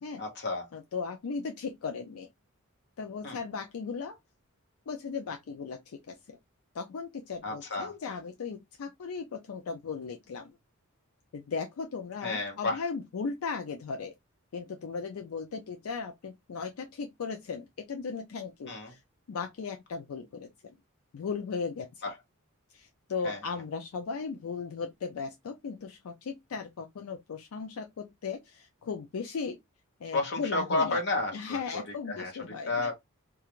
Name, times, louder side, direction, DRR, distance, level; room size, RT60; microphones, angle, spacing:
voice 1, 0.2-0.7 3.2-3.4 7.4-7.9 12.2-12.8 18.7-18.9 22.0-22.1 23.2-23.4 30.1-31.8 32.1-32.3 32.7-32.9, left 2 dB, 55° left, 1.0 m, -31 dB
voice 2, 0.7-2.3 3.0-4.2 4.9-6.2 6.7-10.5 11.3-14.1 14.5-19.0 19.3-20.8 21.1-21.9 22.7-29.6 30.0-31.0 31.3-32.9, left 5 dB, 80° left, 0.4 m, -37 dB
2.4 x 2.3 x 2.9 m
head